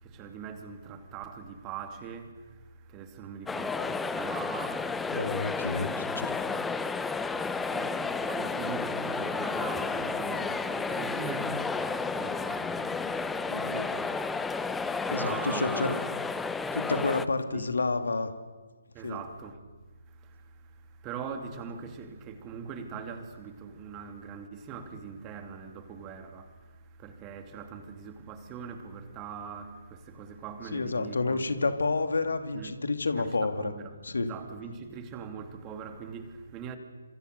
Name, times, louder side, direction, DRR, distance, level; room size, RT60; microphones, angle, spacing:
voice 1, 0.0-5.8 7.1-14.1 14.7-16.1 17.5-17.7 18.9-19.6 20.1-31.7 32.5-32.8 33.2-36.8, right 6 dB, 20° right, 2.8 m, -42 dB
sound 1, 3.5-17.2, left 4 dB, 5° left, 0.9 m, -32 dB
voice 2, 5.1-6.4 13.5-13.9 15.1-15.9 16.7-18.3 19.0-19.2 30.7-33.7 34.0-34.3, left 3 dB, 70° left, 2.6 m, -29 dB
29.5 x 27.0 x 6.8 m
figure-of-eight pair, 140°, 0 cm